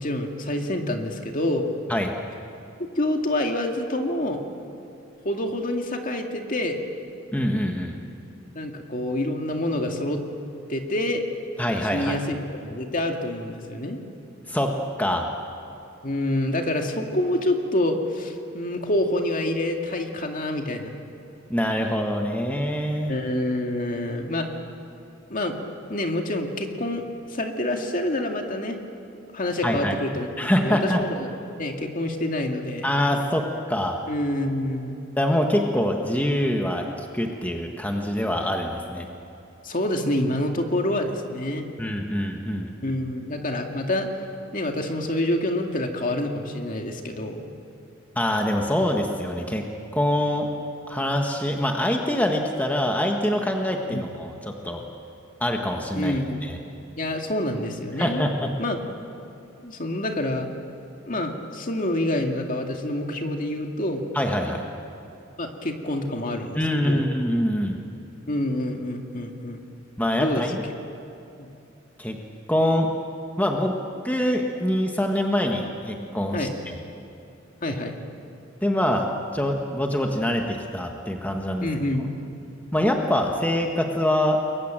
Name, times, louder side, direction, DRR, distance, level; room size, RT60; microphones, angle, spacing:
voice 1, 0.0-1.8 2.9-4.4 5.2-6.8 8.6-10.2 10.7-11.2 11.9-12.4 12.7-14.0 16.0-20.9 23.1-24.6 25.3-25.6 25.9-27.0 27.3-28.8 29.3-31.3 31.6-33.0 34.1-35.0 39.6-41.7 42.8-44.1 44.5-47.5 53.9-54.0 55.9-56.5 57.0-58.2 58.6-58.8 59.6-60.5 61.1-64.0 65.4-67.0 68.3-69.6 70.2-70.4 71.4-71.5 76.3-76.5 77.6-77.9 81.6-82.1, left 1 dB, 40° left, 3 dB, 2.2 m, -27 dB
voice 2, 7.3-7.9 11.6-12.2 14.5-14.7 15.0-15.3 21.5-23.1 29.6-30.0 30.4-31.0 32.8-34.0 35.2-39.1 41.8-42.7 48.1-49.6 49.9-50.5 50.9-54.8 55.4-56.6 58.0-58.5 64.1-64.6 66.5-67.8 70.0-70.6 72.0-72.2 72.5-72.9 73.4-73.8 74.0-76.7 78.6-79.1 79.3-81.7 82.7-84.4, left 1 dB, 10° left, 2 dB, 1.6 m, -24 dB
29.0 x 22.5 x 7.6 m, 2.7 s
head